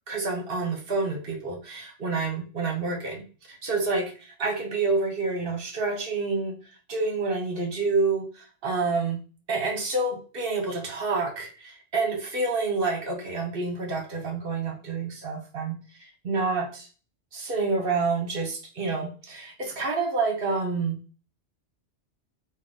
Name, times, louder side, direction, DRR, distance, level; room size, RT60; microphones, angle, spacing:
voice 1, 0.1-3.2 3.5-4.1 4.4-6.6 6.9-9.2 9.5-16.9 17.3-21.0, right 3 dB, 55° right, 3 dB, 1.0 m, -28 dB
3.7 x 2.4 x 3.7 m, 0.35 s
omnidirectional pair, 1.2 m